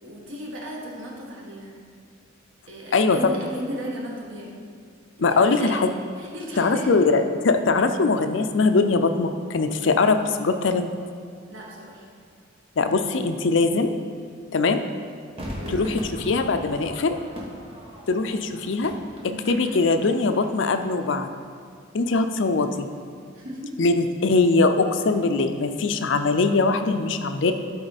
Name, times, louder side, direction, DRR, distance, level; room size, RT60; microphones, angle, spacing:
voice 1, 0.0-1.8 2.7-4.6 5.2-5.8 6.2-7.2 11.5-12.1 15.4-15.8 19.2-19.5 23.3-23.9, equal, 85° right, -3 dB, 1.7 m, -35 dB
voice 2, 2.9-3.3 5.2-5.9 6.6-10.9 12.8-13.9 14.5-14.8 15.7-17.2 18.1-18.9 19.5-21.3 21.9-22.9 23.8-27.5, left 3 dB, 65° left, 8 dB, 0.5 m, -21 dB
Crowd / Fireworks, 15.4-20.8 21.0-21.1, equal, 30° right, 1.3 m, -38 dB
12.5 x 4.3 x 4.1 m, 2.1 s
head